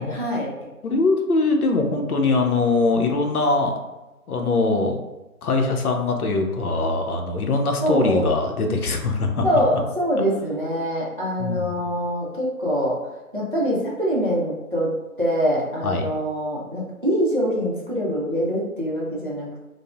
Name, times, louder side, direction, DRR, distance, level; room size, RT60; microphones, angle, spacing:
voice 1, 0.0-0.7 7.8-8.3 9.4-13.0 13.3-19.5, equal, 35° right, -5 dB, 0.5 m, -24 dB
voice 2, 0.8-3.7 4.3-5.0 5.4-9.4 11.4-11.9 15.8-16.1, left 3 dB, 80° left, 3 dB, 0.7 m, -22 dB
3.1 x 2.0 x 2.3 m, 1.0 s
figure-of-eight pair, 165°, 44 cm